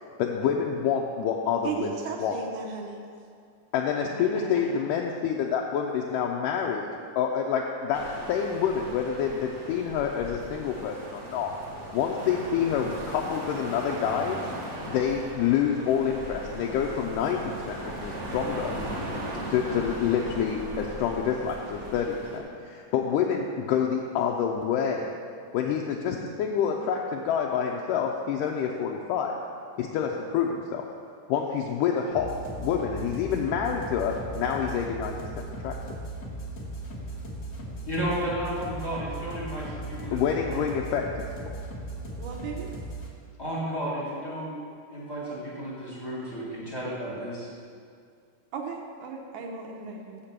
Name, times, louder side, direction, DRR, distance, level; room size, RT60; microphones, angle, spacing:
voice 1, 0.2-1.9 2.2-2.4 3.7-6.9 7.2-8.0 8.3-11.5 11.9-14.4 14.8-18.7 19.5-25.2 25.5-29.4 29.8-30.9 31.3-32.3 32.6-35.8 40.1-41.1, left 7 dB, 85° left, 0 dB, 2.2 m, -27 dB
voice 2, 1.6-3.0 42.2-42.7 48.5-50.2, right 5 dB, 75° right, 1 dB, 2.0 m, -36 dB
sound 1, 7.9-22.4, right 1 dB, 50° right, 1.1 m, -38 dB
sound 2, 32.1-43.1, right 1 dB, 50° left, 1.0 m, -37 dB
voice 3, 37.9-40.2 40.5-40.6 43.4-44.5 44.9-47.5, equal, 25° left, -8 dB, 0.5 m, -33 dB
6.7 x 5.9 x 7.2 m, 2.3 s
omnidirectional pair, 3.7 m